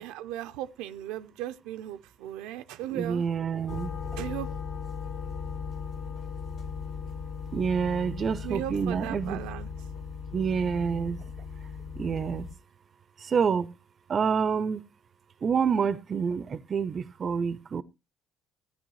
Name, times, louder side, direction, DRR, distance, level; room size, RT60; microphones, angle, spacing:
voice 1, 0.0-3.3 4.2-4.5 8.4-9.7, right 13 dB, 85° right, 0.6 m, -36 dB
voice 2, 2.9-3.9 7.5-9.4 10.3-11.2 12.0-12.5 13.2-13.7 14.1-14.8 15.4-17.8, right 6 dB, 40° right, 0.6 m, -28 dB
sound 1, 3.7-12.5, left 6 dB, 65° left, 2.5 m, -37 dB
14.5 x 9.5 x 3.1 m
cardioid pair, 95°, 0 cm